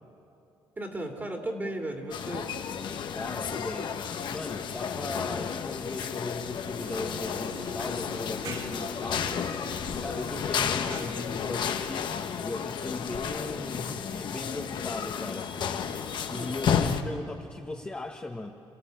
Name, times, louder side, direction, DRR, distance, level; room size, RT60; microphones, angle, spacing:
voice 1, 0.8-2.5 16.3-16.6, right 1 dB, 20° right, 2 dB, 2.4 m, -35 dB
sound 1, 2.1-17.0, left 7 dB, 55° left, 1.3 m, -32 dB
voice 2, 3.1-12.1 12.4-15.8 16.3-18.5, left 2 dB, 15° left, 0 dB, 1.2 m, -38 dB
sound 2, 6.8-11.5, right 5 dB, 60° right, 2.3 m, -44 dB
28.5 x 16.0 x 9.2 m, 2.7 s
cardioid pair, 125°, 9 cm